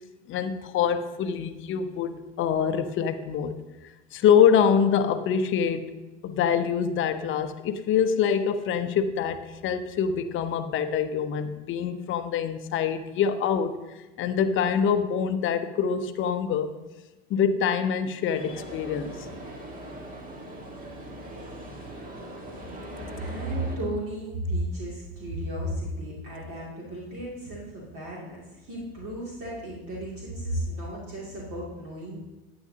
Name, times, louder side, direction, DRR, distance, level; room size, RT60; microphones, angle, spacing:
voice 1, 0.3-3.5 4.1-5.9 6.2-13.8 14.2-16.7 17.3-19.2, left 7 dB, 40° left, 10 dB, 0.8 m, -25 dB
sound 1, 18.3-23.8, right 1 dB, 25° right, 1.6 m, -40 dB
voice 2, 23.1-32.2, right 1 dB, 45° right, -5 dB, 2.5 m, -34 dB
11.5 x 8.7 x 2.8 m, 1.1 s
hypercardioid pair, 90°, 32 cm